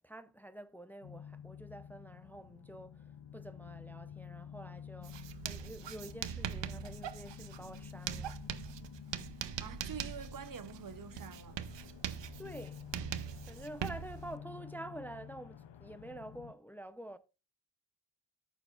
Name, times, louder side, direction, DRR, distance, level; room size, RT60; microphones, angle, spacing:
voice 1, 0.0-5.2 5.4-8.4 12.4-12.9 13.5-17.2, right 1 dB, 5° left, 0.5 m, -48 dB
sound 1, 1.0-16.5, left 8 dB, 90° left, 0.7 m, -50 dB
Writing, 5.0-14.3, right 9 dB, 85° right, 0.7 m, -42 dB
voice 2, 9.6-11.6, right 7 dB, 50° right, 0.7 m, -46 dB
14.0 x 6.7 x 2.4 m
cardioid pair, 70°, 42 cm